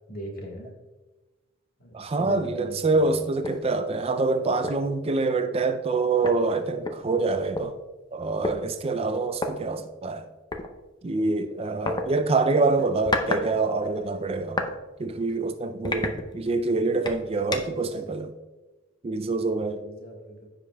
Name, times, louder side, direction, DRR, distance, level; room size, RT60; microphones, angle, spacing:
voice 1, 0.1-0.7 1.8-3.2 17.3-17.8 19.8-20.5, equal, 50° left, 1.5 m, -40 dB
voice 2, 1.9-7.7 8.1-10.3 11.0-14.7 15.0-18.3 19.0-19.8, right 3 dB, 30° right, 0.4 m, -26 dB
sound 1, 3.4-3.6 4.1-4.2 4.6-4.9 5.9-6.0 6.2-7.7 8.4-8.6 9.3-9.5 10.5-10.7 11.9-12.1 12.8-13.5 13.8-14.7 15.2-15.4 15.8-16.6 17.1-17.8, left 2 dB, 20° left, 0.5 m, -30 dB
14.5 x 5.0 x 2.3 m
head